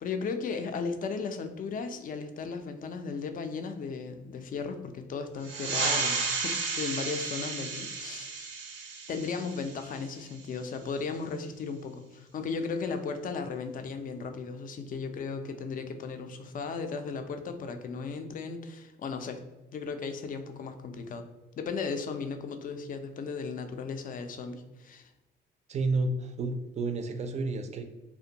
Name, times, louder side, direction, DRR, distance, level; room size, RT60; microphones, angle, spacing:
voice 1, 0.0-8.3 9.1-19.4 19.7-21.3 21.6-25.1, left 5 dB, 45° left, 7 dB, 0.4 m, -36 dB
sound 1, 5.4-10.5, right 4 dB, 90° right, 0.5 m, -33 dB
voice 2, 25.7-27.8, right 3 dB, 35° right, 7 dB, 0.4 m, -30 dB
2.5 x 2.1 x 2.7 m, 1.1 s
cardioid pair, 90°, 20 cm